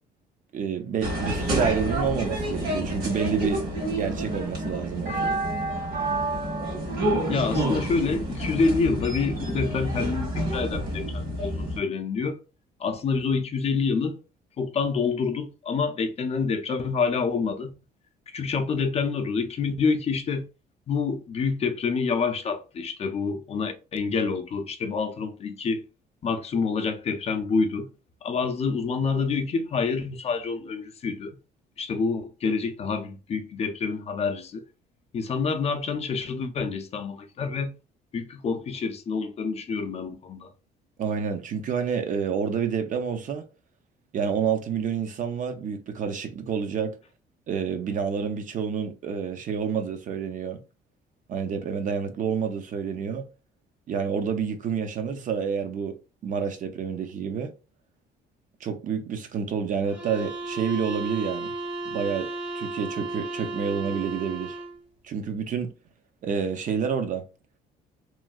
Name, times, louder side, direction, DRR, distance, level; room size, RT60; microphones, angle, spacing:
voice 1, 0.5-3.6 3.9-5.4 41.0-43.5 44.1-47.0 47.5-50.6 51.3-53.2 53.9-56.0 56.2-57.5 58.6-61.5 61.9-62.3 62.5-64.6 65.0-65.7 66.2-67.2, right 6 dB, 50° right, 0.6 m, -28 dB
sound 1, 1.0-11.8, right 1 dB, 65° right, 1.6 m, -28 dB
voice 2, 7.3-12.4 12.8-14.2 14.6-17.7 18.3-20.5 20.9-25.8 26.2-27.9 28.2-31.4 31.8-34.6 35.1-37.7 38.1-40.5, left 5 dB, 40° left, 0.5 m, -27 dB
sound 2, 59.9-64.8, right 2 dB, 10° right, 0.7 m, -34 dB
3.1 x 2.6 x 2.3 m
cardioid pair, 110°, 17 cm